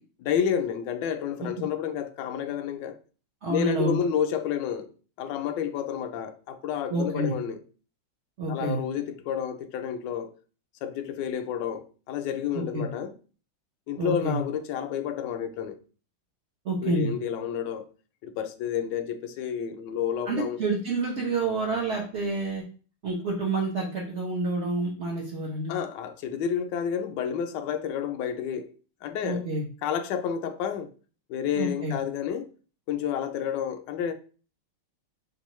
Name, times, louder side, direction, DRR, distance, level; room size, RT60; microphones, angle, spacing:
voice 1, 0.3-3.0 3.5-4.9 5.2-7.6 8.5-10.3 10.8-13.1 13.9-15.8 16.8-17.8 18.2-20.6 25.7-28.7 29.0-29.5 29.8-30.9 31.3-32.5 32.9-34.1, left 8 dB, 75° left, 1.1 m, -30 dB
voice 2, 3.4-4.0 6.9-7.3 8.4-8.8 12.7-12.9 14.0-14.4 16.6-17.1 20.3-22.6 23.0-25.8 29.2-29.6 31.5-32.0, right 2 dB, 65° right, 0.7 m, -28 dB
5.4 x 2.4 x 3.0 m
omnidirectional pair, 2.3 m